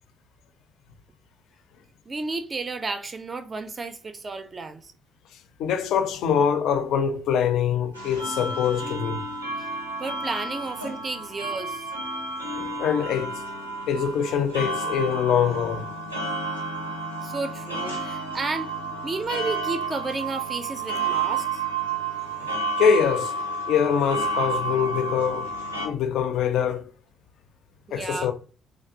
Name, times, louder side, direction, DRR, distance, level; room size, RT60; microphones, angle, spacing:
voice 1, 2.1-4.9 10.0-11.9 17.2-18.7 19.0-21.6 27.9-28.3, right 3 dB, 30° right, 0.3 m, -32 dB
voice 2, 5.6-9.2 12.5-13.3 13.9-15.9 22.3-23.4 23.7-25.5 25.8-26.8 27.9-28.3, left 7 dB, 60° left, 0.4 m, -24 dB
sound 1, 7.9-25.9, right 3 dB, 90° right, 0.5 m, -31 dB
3.0 x 2.3 x 2.6 m
figure-of-eight pair, 45°, 0 cm